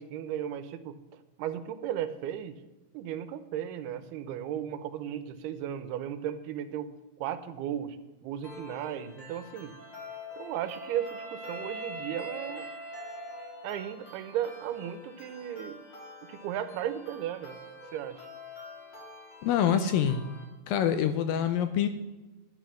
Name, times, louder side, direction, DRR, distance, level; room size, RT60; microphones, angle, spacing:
voice 1, 0.0-2.6 2.9-6.9 7.2-8.0 8.2-9.7 10.4-12.7 13.6-15.8 16.3-17.6 17.9-18.3, right 10 dB, 80° right, 11 dB, 2.7 m, -35 dB
sound 1, 8.4-20.4, left 2 dB, 30° left, 3.6 m, -48 dB
Wind instrument woodwind instrument, 9.8-14.0, right 1 dB, 40° right, 1.0 m, -42 dB
voice 2, 19.4-20.2 20.7-21.9, left 9 dB, 80° left, 9 dB, 2.2 m, -25 dB
11.5 x 10.5 x 6.2 m, 1.1 s
omnidirectional pair, 4.6 m